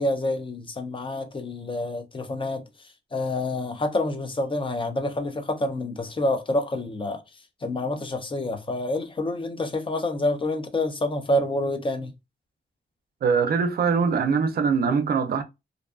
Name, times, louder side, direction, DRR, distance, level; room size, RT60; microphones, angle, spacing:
voice 1, 0.0-2.6 3.1-7.2 7.6-12.1, left 1 dB, 30° left, 0.4 m, -27 dB
voice 2, 13.2-15.4, right 5 dB, 60° right, 0.4 m, -22 dB
2.5 x 2.2 x 2.3 m
wide cardioid pair, 135°, 18 cm